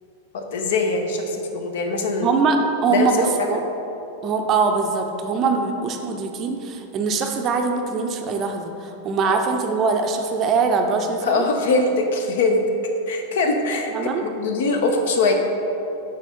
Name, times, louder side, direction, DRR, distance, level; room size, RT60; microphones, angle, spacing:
voice 1, 0.3-2.3 2.9-3.6 9.3-9.4 11.2-12.6 13.1-13.9 14.2-15.3, left 3 dB, 55° left, 3 dB, 0.7 m, -22 dB
voice 2, 2.2-3.6 4.2-11.5 13.9-14.2, right 4 dB, 30° right, 4 dB, 0.5 m, -22 dB
6.6 x 4.0 x 4.7 m, 2.9 s
figure-of-eight pair, 90°, 0 cm